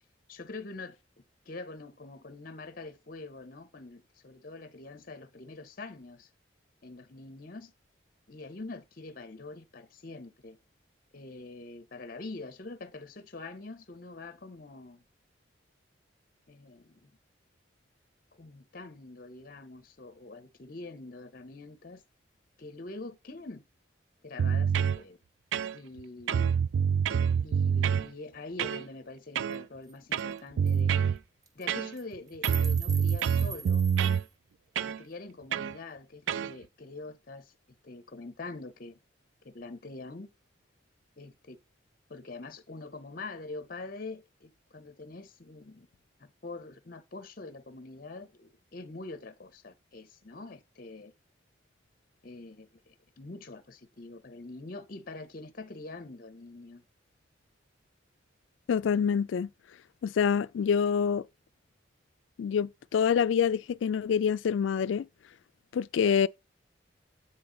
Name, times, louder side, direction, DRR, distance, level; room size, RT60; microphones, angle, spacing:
voice 1, 0.3-1.0 1.5-6.3 6.8-7.7 8.3-10.6 11.1-15.0 16.5-17.1 18.3-22.0 22.6-23.6 24.2-25.2 25.7-26.6 27.4-31.0 31.5-33.9 34.8-37.5 37.8-39.0 39.4-40.3 41.2-41.6 42.1-45.9 46.2-51.1 52.2-56.8, left 3 dB, 50° left, 0.7 m, -44 dB
sound 1, 24.4-25.0 25.5-26.0 26.3-28.1 28.6-28.8 29.4-29.6 30.1-31.2 31.7-32.1 32.4-34.2 34.8-35.0 35.5-35.7 36.3-36.5, right 7 dB, 80° right, 0.3 m, -26 dB
sound 2, 29.5-29.6 29.9-30.0 30.2-30.4 30.7-30.8 31.4-31.7 32.0-34.3, right 7 dB, 20° right, 0.5 m, -42 dB
voice 2, 58.7-59.5 60.0-61.2 62.4-65.1 65.7-66.3, left 7 dB, 80° left, 0.3 m, -26 dB
8.6 x 4.3 x 3.8 m
head